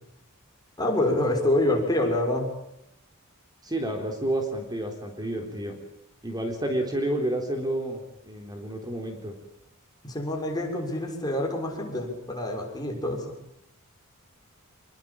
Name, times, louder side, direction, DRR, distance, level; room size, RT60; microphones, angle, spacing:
voice 1, 0.8-2.5 10.0-13.3, left 1 dB, 20° left, 1 dB, 6.6 m, -26 dB
voice 2, 3.6-5.8 6.2-9.3, right 1 dB, 20° right, 3 dB, 3.7 m, -30 dB
27.5 x 22.5 x 8.8 m, 0.82 s
head